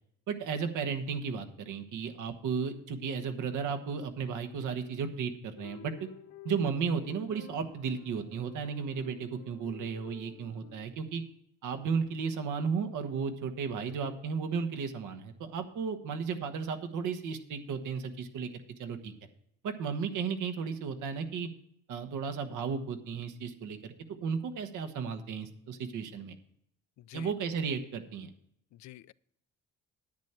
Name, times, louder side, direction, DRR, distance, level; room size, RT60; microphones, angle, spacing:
voice 1, 0.3-6.1 6.4-11.2 11.6-18.5 18.8-19.1 19.6-21.5 21.9-23.9 24.2-26.3 27.1-28.3, right 6 dB, 80° right, 8 dB, 1.3 m, -34 dB
sound 1, 5.6-10.9, left 8 dB, 85° left, 1.5 m, -51 dB
voice 2, 27.0-27.3 28.7-29.1, left 15 dB, 70° left, 18 dB, 0.5 m, -48 dB
10.5 x 8.9 x 4.4 m, 0.74 s
cardioid pair, 90°, 30 cm